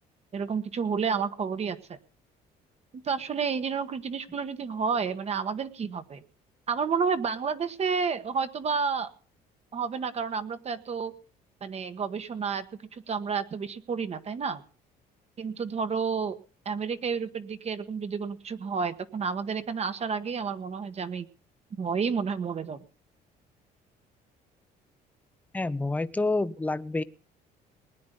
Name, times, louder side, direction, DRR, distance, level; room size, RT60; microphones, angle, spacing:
voice 1, 0.3-2.0 2.9-6.2 6.7-9.1 9.7-11.1 11.6-12.7 12.9-14.6 15.4-16.4 16.6-21.3 21.8-22.8, right 5 dB, 40° right, 10 dB, 1.3 m, -30 dB
voice 2, 25.5-27.0, left 2 dB, 10° left, 14 dB, 0.7 m, -28 dB
20.0 x 9.7 x 5.3 m, 0.42 s
cardioid pair, 110°, 17 cm